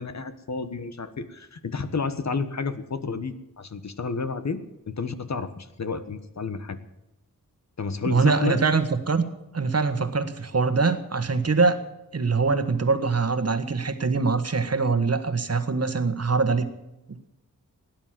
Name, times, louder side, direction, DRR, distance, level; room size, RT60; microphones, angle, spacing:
voice 1, 0.0-6.8 7.8-8.6, left 4 dB, 55° left, 11 dB, 1.3 m, -31 dB
voice 2, 8.1-9.2 9.5-11.8 12.1-16.7 17.1-17.3, right 4 dB, 45° right, 9 dB, 1.5 m, -23 dB
17.5 x 10.5 x 7.5 m, 0.93 s
wide cardioid pair, 115°, 34 cm